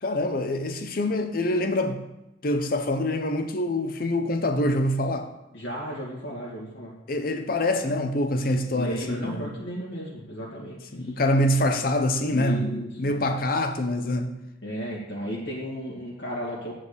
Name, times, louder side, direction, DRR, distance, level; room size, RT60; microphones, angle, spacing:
voice 1, 0.0-2.0 2.4-5.3 7.1-9.5 10.9-14.4, left 1 dB, 50° left, 0.7 m, -25 dB
voice 2, 5.5-6.9 8.7-11.2 12.3-13.3 14.6-16.7, equal, 75° left, 2.1 m, -34 dB
8.1 x 5.0 x 6.8 m
head